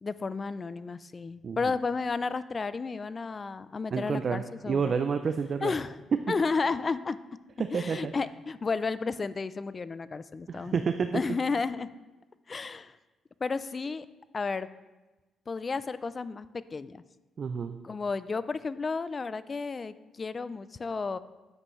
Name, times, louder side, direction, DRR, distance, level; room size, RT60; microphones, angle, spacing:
voice 1, 0.0-5.0 5.6-6.0 6.3-7.2 7.7-10.8 11.1-11.9 12.5-13.0 13.4-14.1 14.3-14.7 15.5-17.0 17.8-21.2, left 4 dB, 35° left, 15 dB, 0.3 m, -32 dB
voice 2, 3.9-5.7 7.6-8.1 10.5-11.1 17.4-17.8, right 6 dB, 50° right, 8 dB, 0.4 m, -29 dB
9.6 x 7.7 x 3.1 m, 1.1 s
cardioid pair, 90°, 0 cm